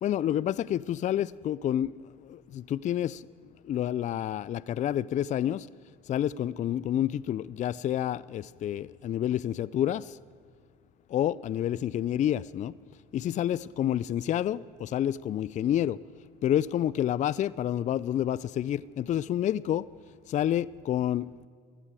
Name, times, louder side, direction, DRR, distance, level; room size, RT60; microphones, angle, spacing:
voice 1, 0.0-3.3 3.6-5.7 6.1-10.2 11.1-12.7 13.1-16.0 16.4-19.9 20.3-21.5, left 11 dB, 35° left, 0.4 m, -29 dB
19.5 x 14.0 x 4.9 m
supercardioid pair, 80°, 21 cm